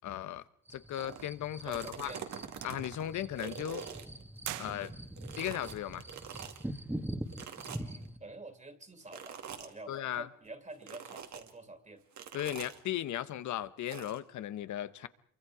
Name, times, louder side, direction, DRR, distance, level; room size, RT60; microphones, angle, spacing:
voice 1, 0.0-0.4 0.7-2.1 2.6-3.9 4.6-4.9 5.4-6.0 9.9-10.3 12.3-15.1, left 12 dB, 70° left, 14 dB, 1.1 m, -36 dB
sound 1, 0.7-8.2, right 1 dB, 5° right, 1.7 m, -43 dB
sound 2, 1.0-1.2 1.6-4.9 5.2-6.6 7.3-8.1 9.1-9.7 10.8-11.5 12.1-12.8 13.9-14.2, right 8 dB, 65° right, 2.4 m, -45 dB
voice 2, 1.6-2.3 7.7-12.0, right 2 dB, 25° right, 7 dB, 2.8 m, -48 dB
sound 3, 4.4-5.4, right 14 dB, 85° right, 0.9 m, -42 dB
27.0 x 24.0 x 4.9 m, 0.63 s
cardioid pair, 90°, 30 cm